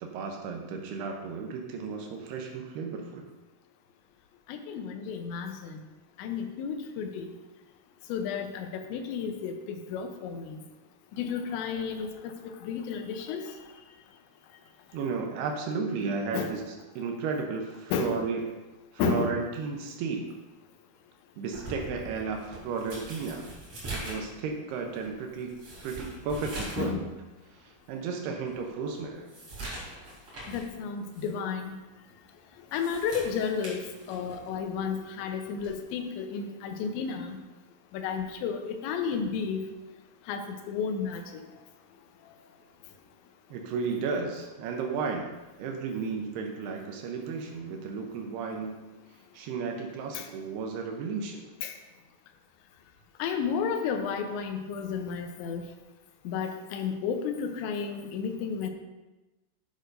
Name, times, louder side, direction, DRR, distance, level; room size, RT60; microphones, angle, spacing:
voice 1, 0.0-3.3 14.9-16.6 17.0-18.5 19.0-20.3 21.4-23.5 23.9-25.5 25.8-27.0 27.5-29.3 43.5-45.3 45.6-48.8 49.3-51.4, right 5 dB, 85° right, 2 dB, 2.3 m, -33 dB
voice 2, 4.5-5.8 6.2-7.3 8.1-10.6 11.2-12.1 12.6-13.5 16.3-16.5 17.9-18.2 19.0-19.3 26.8-27.1 30.5-31.8 32.7-33.8 34.1-37.4 37.9-39.6 40.3-41.2 50.1-50.2 51.6-51.7 53.2-55.6 56.3-58.7, left 6 dB, 80° left, 5 dB, 2.8 m, -32 dB
sound 1, 21.5-26.9 27.3-27.4 27.9-28.0 28.5-30.7 31.1-31.3 32.5-34.5 35.6-35.8, right 2 dB, 35° right, 3.5 m, -42 dB
10.5 x 9.5 x 2.6 m, 1.1 s
omnidirectional pair, 5.7 m